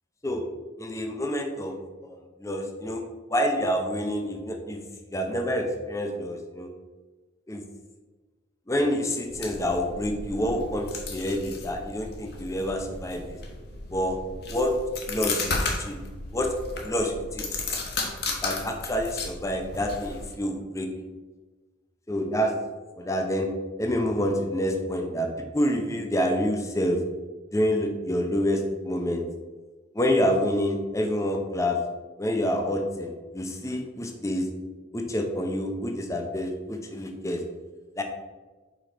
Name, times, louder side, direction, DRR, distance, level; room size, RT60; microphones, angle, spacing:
voice 1, 0.8-3.0 3.3-4.8 5.1-6.7 7.5-7.6 8.7-13.4 13.9-14.2 14.5-14.7 15.1-16.0 16.3-16.5 16.8-17.8 18.4-20.9 22.1-22.5 23.0-23.5 23.8-27.0 27.5-29.2 29.9-31.8 32.2-34.5 34.9-37.4 38.0-38.1, equal, 15° left, 3 dB, 0.7 m, -27 dB
sound 1, 9.3-20.3, left 3 dB, 55° left, 1.1 m, -34 dB
5.2 x 4.8 x 5.8 m, 1.3 s
head